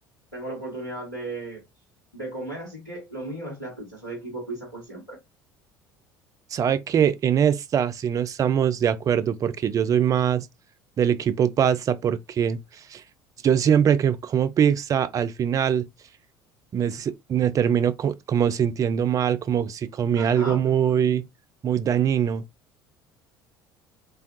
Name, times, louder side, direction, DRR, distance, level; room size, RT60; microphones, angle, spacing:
voice 1, 0.3-1.6 2.1-5.2 20.2-20.6, right 2 dB, 90° left, 1.0 m, -35 dB
voice 2, 6.5-10.5 11.0-13.0 13.4-15.9 16.7-21.2 21.6-22.4, right 8 dB, 30° right, 0.4 m, -22 dB
3.3 x 2.2 x 2.6 m
figure-of-eight pair, 60°, 11 cm